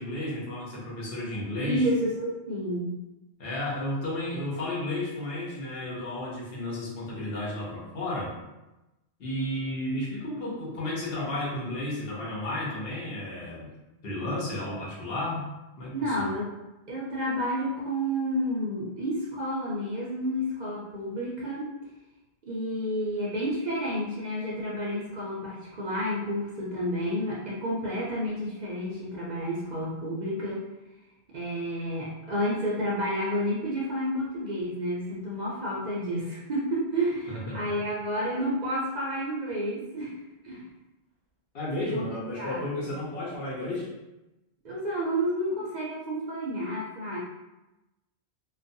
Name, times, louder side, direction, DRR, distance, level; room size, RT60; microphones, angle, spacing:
voice 1, 0.0-1.8 3.4-8.3 9.2-13.7 14.0-15.4 15.8-16.3 37.3-37.6 41.5-43.9, left 1 dB, 60° left, -5 dB, 1.0 m, -32 dB
voice 2, 1.6-3.0 15.9-16.5 16.9-21.7 22.5-30.6 31.3-40.1 40.4-40.6 41.9-42.1 42.4-42.7 44.6-47.2, equal, 55° right, -5 dB, 0.5 m, -30 dB
2.3 x 2.2 x 2.5 m, 1.0 s
omnidirectional pair, 1.2 m